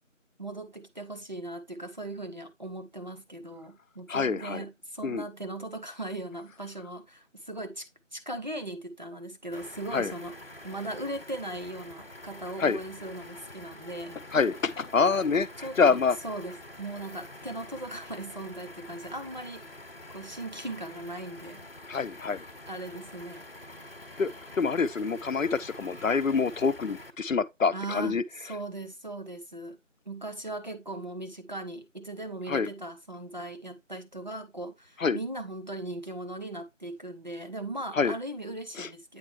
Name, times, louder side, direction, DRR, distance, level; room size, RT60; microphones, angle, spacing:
voice 1, 0.4-10.3 10.6-14.2 15.6-19.6 20.1-21.7 22.3-23.5 27.7-29.8 30.1-39.2, right 1 dB, 35° right, 0.8 m, -38 dB
voice 2, 4.1-4.6 5.0-5.2 9.9-10.1 12.6-12.8 14.3-15.5 15.8-16.2 21.9-22.4 24.2-24.3 24.6-28.2 32.5-32.7 35.0-35.2 37.9-38.1 38.8-38.9, left 5 dB, 85° left, 0.7 m, -26 dB
sound 1, 9.5-27.1, left 1 dB, 50° left, 1.0 m, -47 dB
8.6 x 4.3 x 3.1 m
figure-of-eight pair, 170°, 38 cm